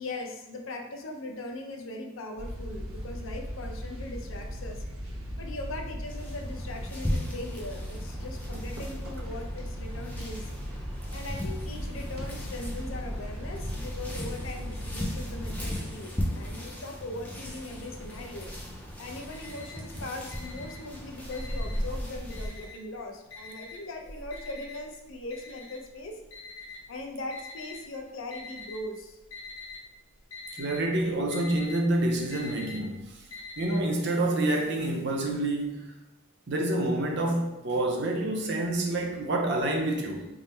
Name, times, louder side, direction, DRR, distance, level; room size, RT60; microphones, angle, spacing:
voice 1, 0.0-4.8 5.4-10.5 11.1-18.5 19.0-26.2 26.9-29.2, left 2 dB, 60° left, 3 dB, 0.5 m, -40 dB
sound 1, 2.4-15.7, equal, 70° right, 1.0 m, -37 dB
sound 2, 6.0-22.7, equal, 5° left, 0.4 m, -37 dB
Alarm, 19.3-19.9 20.3-21.9 22.3-23.0 23.3-27.8 28.3-28.9 29.2-29.8 30.1-33.8, left 4 dB, 80° left, 1.1 m, -44 dB
voice 2, 30.5-33.1 33.6-35.9 36.5-40.3, right 1 dB, 50° right, 1 dB, 0.6 m, -28 dB
3.6 x 2.0 x 4.2 m, 0.94 s
head